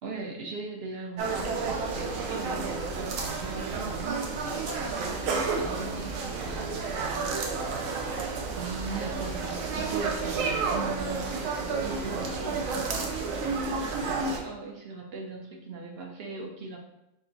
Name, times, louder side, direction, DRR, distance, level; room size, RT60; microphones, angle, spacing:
voice 1, 0.0-7.9 8.6-16.8, right 3 dB, 60° right, 1 dB, 0.8 m, -39 dB
sound 1, 1.2-14.4, right 4 dB, 85° right, 1.1 m, -31 dB
4.6 x 2.5 x 3.8 m, 0.86 s
omnidirectional pair, 1.3 m